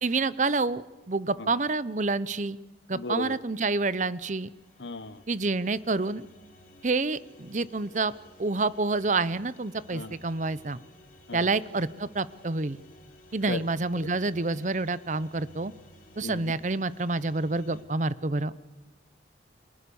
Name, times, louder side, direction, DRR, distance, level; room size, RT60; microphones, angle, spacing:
voice 1, 0.0-2.6 2.9-4.5 5.3-6.2 6.8-8.1 8.4-10.8 11.3-12.8 13.3-15.7 16.2-18.5, right 3 dB, 40° right, 17 dB, 0.8 m, -28 dB
voice 2, 2.9-3.4 4.8-5.2 9.9-10.1 11.3-11.5 13.5-13.6 13.9-14.1 16.2-16.5, left 2 dB, 70° left, 14 dB, 1.1 m, -36 dB
sound 1, 3.7-17.8, left 1 dB, 45° left, 3.8 m, -56 dB
30.0 x 23.5 x 7.1 m, 1.2 s
head